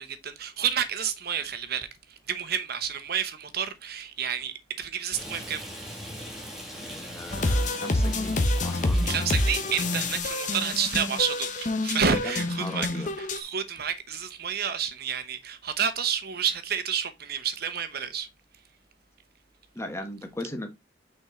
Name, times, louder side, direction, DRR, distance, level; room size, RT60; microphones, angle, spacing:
voice 1, 0.0-5.6 9.0-18.3, right 7 dB, 55° right, 1.0 m, -30 dB
Rain, 5.1-10.2, equal, ahead, 2.1 m, -40 dB
voice 2, 6.8-9.2 12.1-13.1 19.7-20.7, left 1 dB, 15° left, 1.2 m, -38 dB
sound 1, 7.3-13.4, left 2 dB, 45° left, 1.0 m, -27 dB
6.1 x 4.6 x 3.7 m
head